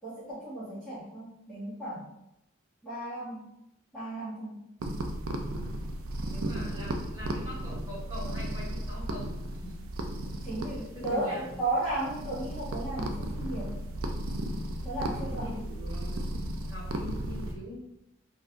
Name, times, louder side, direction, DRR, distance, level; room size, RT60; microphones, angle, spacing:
voice 1, 0.0-2.0 2.8-3.5 3.9-4.7 10.4-13.7 14.8-15.5, right 2 dB, ahead, -15 dB, 0.9 m, -34 dB
sound 1, 4.8-17.5, right 1 dB, 80° right, 0.4 m, -35 dB
voice 2, 6.3-9.3 9.6-9.8 10.9-11.6 15.2-17.8, equal, 20° right, -9 dB, 1.5 m, -43 dB
2.5 x 2.3 x 3.5 m, 0.84 s
head